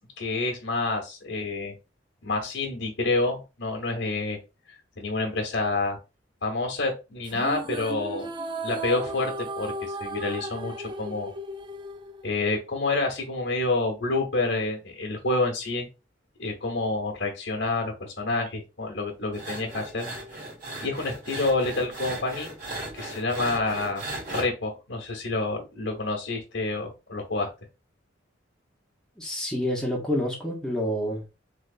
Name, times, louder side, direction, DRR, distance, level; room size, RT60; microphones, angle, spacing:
voice 1, 0.2-1.7 2.2-4.4 5.0-6.0 6.4-8.3 8.6-11.3 12.2-15.9 16.4-20.1 20.8-22.5 22.9-24.0 24.3-27.5, left 2 dB, 70° left, 1.0 m, -28 dB
sound 1, 7.2-12.7, right 1 dB, 25° right, 0.3 m, -35 dB
sound 2, 19.3-24.5, right 1 dB, 45° right, 2.1 m, -37 dB
voice 2, 29.2-31.3, equal, 5° left, 0.9 m, -28 dB
3.5 x 3.1 x 2.5 m
head